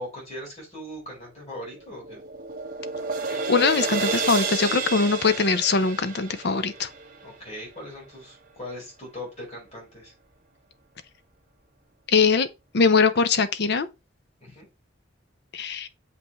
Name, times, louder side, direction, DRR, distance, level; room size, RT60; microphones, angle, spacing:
voice 1, 0.0-2.2 7.2-10.1 14.4-14.7, left 1 dB, 35° left, 4.6 m, -39 dB
sound 1, 1.5-7.9, right 4 dB, 45° right, 1.5 m, -31 dB
voice 2, 3.5-6.9 12.1-12.5 12.7-13.9 15.5-15.9, left 4 dB, 60° left, 0.7 m, -21 dB
6.9 x 5.4 x 3.1 m
head